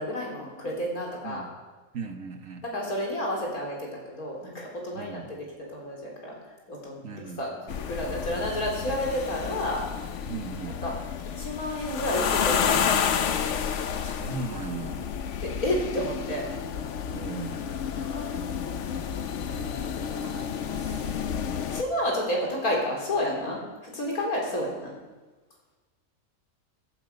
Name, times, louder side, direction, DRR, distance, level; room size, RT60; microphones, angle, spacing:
voice 1, 0.0-1.5 2.6-6.3 6.7-7.5 7.9-9.8 10.7-10.9 11.4-12.9 15.4-16.5 18.0-18.8 21.7-24.9, left 1 dB, 80° left, -2 dB, 4.0 m, -31 dB
voice 2, 1.9-2.6 4.9-5.3 7.0-7.4 10.3-10.8 14.0-15.1 17.1-17.7 20.2-21.3, right 4 dB, 65° right, 6 dB, 1.6 m, -38 dB
sound 1, 7.7-21.8, left 7 dB, 60° left, 1.0 m, -30 dB
14.5 x 13.5 x 5.3 m, 1.3 s
omnidirectional pair, 1.5 m